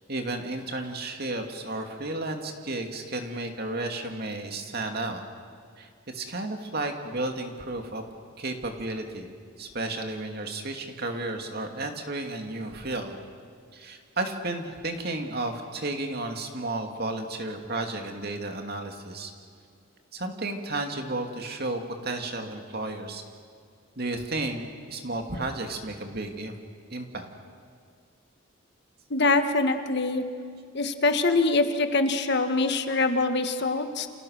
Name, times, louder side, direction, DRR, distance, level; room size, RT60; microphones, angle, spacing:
voice 1, 0.1-5.2 5.8-8.0 8.4-9.3 9.6-13.2 13.7-19.3 20.1-23.2 24.0-24.6 24.9-26.5 26.9-27.3, right 2 dB, 50° right, 4 dB, 2.6 m, -33 dB
voice 2, 29.1-30.2 30.7-34.1, left 3 dB, 55° left, 7 dB, 1.6 m, -24 dB
29.5 x 28.0 x 6.7 m, 2.1 s
head